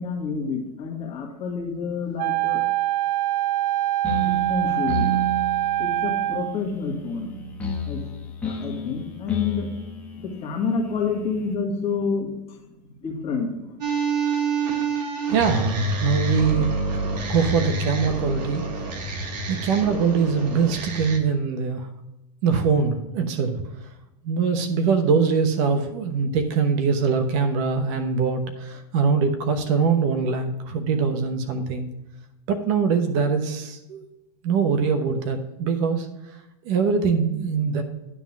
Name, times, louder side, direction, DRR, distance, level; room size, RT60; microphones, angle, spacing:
voice 1, 0.0-2.6 4.2-5.1 5.8-7.4 7.8-8.0 8.4-9.7 10.2-12.6 13.0-13.5, left 5 dB, 30° left, 0 dB, 1.9 m, -28 dB
Wind instrument woodwind instrument, 2.2-6.6, right 14 dB, 65° right, 0.6 m, -24 dB
sound 1, 4.0-11.5, right 1 dB, 5° left, 1.2 m, -31 dB
sound 2, 13.8-21.2, right 3 dB, 90° right, 1.9 m, -27 dB
voice 2, 15.3-17.0 17.3-18.6 19.5-21.9 22.4-23.6 24.2-31.9 32.5-34.0 34.4-36.1 36.6-37.8, right 5 dB, 50° right, 7 dB, 1.0 m, -23 dB
9.8 x 3.7 x 7.3 m, 0.94 s
supercardioid pair, 150°, 21 cm